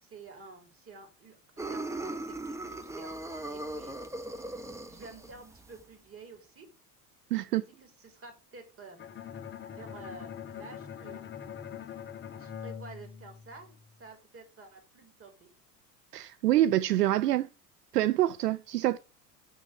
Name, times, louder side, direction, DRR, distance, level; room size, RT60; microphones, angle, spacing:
voice 1, 0.0-3.9 4.8-6.7 7.3-9.0 9.7-11.2 12.3-15.5, right 3 dB, 30° right, 3.6 m, -50 dB
sound 1, 1.6-5.8, right 2 dB, 5° right, 1.0 m, -39 dB
voice 2, 7.3-7.6 16.1-17.5 17.9-19.0, right 14 dB, 75° right, 0.6 m, -26 dB
Bowed string instrument, 9.0-13.9, left 8 dB, 20° left, 1.2 m, -43 dB
6.5 x 6.3 x 7.4 m
figure-of-eight pair, 75°, 48 cm